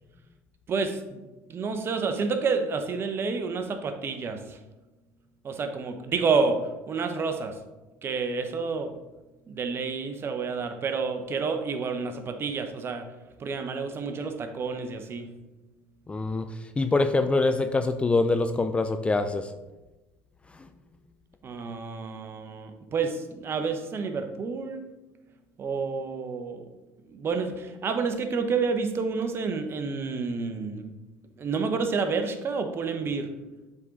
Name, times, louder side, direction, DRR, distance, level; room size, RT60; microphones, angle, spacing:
voice 1, 0.7-1.2 1.5-4.6 5.4-7.6 8.0-8.9 9.5-13.0 13.4-15.3 21.4-24.8 25.6-26.7 27.1-30.9 31.4-33.3, right 4 dB, 35° right, 7 dB, 0.8 m, -29 dB
voice 2, 16.1-16.5 16.8-19.5, left 3 dB, 15° left, 9 dB, 0.3 m, -24 dB
7.5 x 3.8 x 3.7 m, 1.1 s
supercardioid pair, 90°, 7 cm